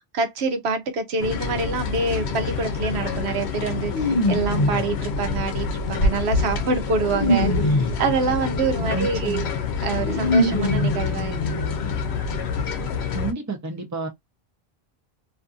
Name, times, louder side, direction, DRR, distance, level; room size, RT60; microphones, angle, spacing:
voice 1, 0.1-9.5 9.8-11.6, right 4 dB, 80° right, 0.9 m, -26 dB
sound 1, 1.2-13.3, left 4 dB, 80° left, 0.9 m, -27 dB
sound 2, 2.3-2.5 3.9-5.0 5.8-8.1 9.4-9.5 9.8-12.1 12.3-12.4 12.7-12.8, left 1 dB, 45° left, 0.4 m, -24 dB
voice 2, 8.8-9.5 13.1-14.1, right 4 dB, 20° right, 0.6 m, -30 dB
2.6 x 2.5 x 2.3 m
omnidirectional pair, 1.1 m